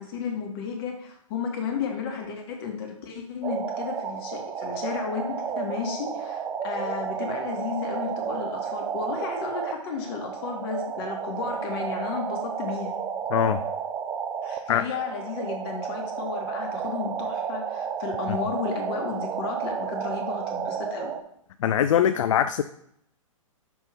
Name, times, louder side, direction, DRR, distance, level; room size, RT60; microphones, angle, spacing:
voice 1, 0.0-13.0 14.4-21.1, left 6 dB, 45° left, 3 dB, 1.7 m, -33 dB
sound 1, 3.4-21.2, right 7 dB, 15° right, 0.4 m, -32 dB
voice 2, 13.3-13.6 14.7-14.8 18.3-18.4 21.6-22.6, left 9 dB, 65° left, 12 dB, 0.4 m, -22 dB
6.0 x 5.6 x 3.5 m, 0.72 s
hypercardioid pair, 120°, 18 cm